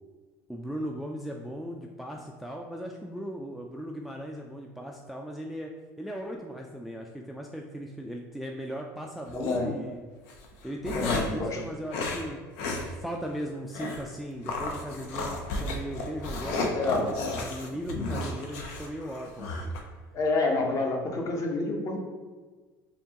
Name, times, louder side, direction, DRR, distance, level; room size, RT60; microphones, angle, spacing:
voice 1, 0.5-5.7 6.0-10.0 10.6-12.4 12.7-17.1 17.3-19.7, equal, ahead, 1 dB, 0.3 m, -37 dB
sound 1, 9.3-9.6 10.3-11.4 11.9-12.2 12.6-12.9 13.2-13.3 13.7-14.0 14.5-19.8, left 2 dB, 75° left, 0.6 m, -33 dB
voice 2, 9.3-9.7 10.9-11.6 16.7-17.1 20.1-22.0, left 3 dB, 35° left, 1 dB, 0.8 m, -28 dB
4.3 x 2.9 x 2.9 m, 1.4 s
supercardioid pair, 100°, 9 cm